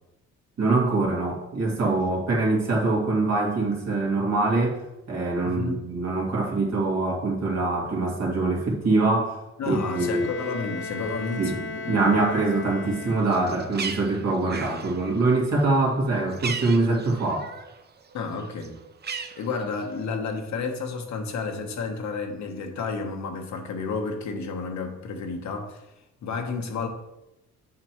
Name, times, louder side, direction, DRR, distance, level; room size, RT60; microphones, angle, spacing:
voice 1, 0.6-4.8 5.1-9.4 9.6-10.3 11.4-11.6 11.9-17.5, right 3 dB, 60° right, -2 dB, 2.3 m, -24 dB
voice 2, 5.4-5.8 9.6-12.0 18.1-18.8 19.1-25.9 26.2-26.9, left 4 dB, 65° left, 4 dB, 1.1 m, -31 dB
Bowed string instrument, 9.7-13.7, left 3 dB, 40° left, 0.8 m, -37 dB
Bird, 13.2-17.8 18.1-20.0, right 5 dB, 35° right, 0.6 m, -37 dB
7.6 x 5.9 x 3.0 m, 0.91 s
cardioid pair, 90°, 30 cm